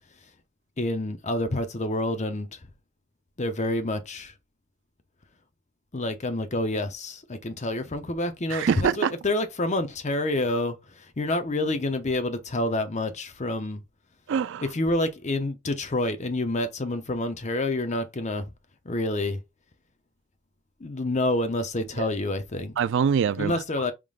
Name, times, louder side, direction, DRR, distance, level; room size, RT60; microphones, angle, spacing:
voice 1, 0.8-2.5 3.4-4.3 5.9-13.8 14.7-18.5 18.8-19.4 20.8-22.8 23.4-23.9, left 1 dB, 35° left, 0.7 m, -28 dB
voice 2, 8.5-9.1 14.3-14.7 22.0-22.1 22.8-23.6, right 7 dB, 55° right, 0.3 m, -24 dB
4.9 x 3.7 x 2.4 m
head